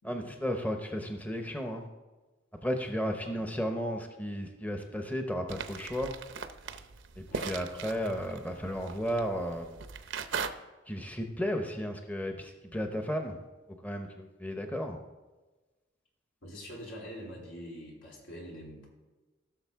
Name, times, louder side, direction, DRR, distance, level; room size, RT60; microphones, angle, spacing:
voice 1, 0.0-1.8 2.6-6.1 7.2-9.7 10.9-13.4 13.8-15.0, equal, 10° left, 4 dB, 0.7 m, -34 dB
sound 1, 5.5-10.5, right 5 dB, 70° right, 0.6 m, -39 dB
voice 2, 16.4-18.9, equal, 85° left, -3 dB, 3.3 m, -45 dB
16.5 x 6.4 x 3.6 m, 1.2 s
head